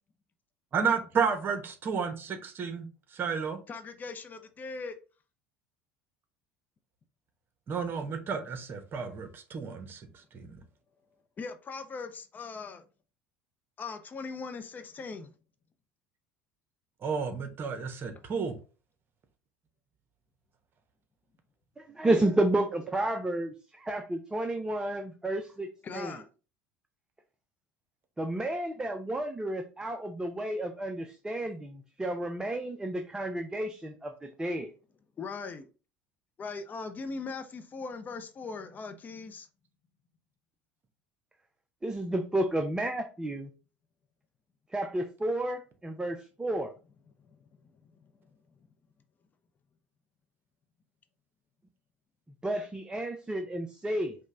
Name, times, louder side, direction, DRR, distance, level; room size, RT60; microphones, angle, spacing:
voice 1, 0.7-2.9 3.1-3.6 7.7-10.0 10.3-10.6 17.0-18.5, right 6 dB, 40° right, 8 dB, 0.9 m, -31 dB
voice 2, 3.7-5.0 11.4-12.8 13.8-15.3 18.1-18.2 25.8-26.3 35.2-35.7 36.4-39.5 47.2-48.1, left 4 dB, 30° left, 8 dB, 0.6 m, -40 dB
voice 3, 21.8-25.7 25.9-26.2 28.2-34.7 41.8-43.5 44.7-46.7 52.4-54.2, right 1 dB, 10° right, 6 dB, 0.5 m, -31 dB
5.1 x 2.2 x 3.7 m, 0.34 s
hypercardioid pair, 70°, 6 cm